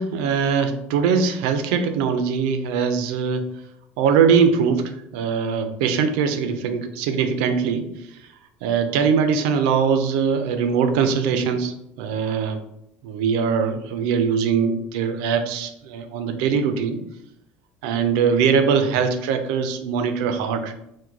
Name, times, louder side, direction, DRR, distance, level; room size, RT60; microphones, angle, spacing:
voice 1, 0.0-3.5 4.0-7.9 8.6-12.6 13.0-17.0 17.8-20.7, right 6 dB, 85° right, 8 dB, 0.5 m, -21 dB
4.6 x 2.2 x 3.7 m, 0.80 s
cardioid pair, 125°, 4 cm